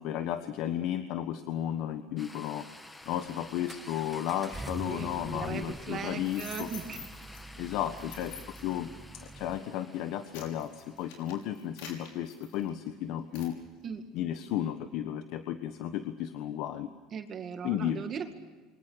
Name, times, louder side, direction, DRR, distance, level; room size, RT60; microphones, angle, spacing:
voice 1, 0.0-2.7 3.0-6.7 7.6-13.6 14.1-16.9 17.6-18.0, left 11 dB, 65° left, 9 dB, 1.4 m, -34 dB
sound 1, 2.2-12.5, left 2 dB, 10° left, 1.7 m, -52 dB
Accelerating revving vroom, 3.0-9.6, right 2 dB, 10° right, 0.8 m, -46 dB
voice 2, 4.8-7.1 13.8-14.0 17.1-18.3, right 7 dB, 40° right, 6 dB, 2.0 m, -38 dB
sound 2, 6.2-7.4 8.0-8.7 9.4-9.6 10.0-12.9 13.3-13.6, left 6 dB, 85° left, 6.0 m, -46 dB
28.0 x 24.0 x 6.4 m, 1.3 s
supercardioid pair, 125°, 0 cm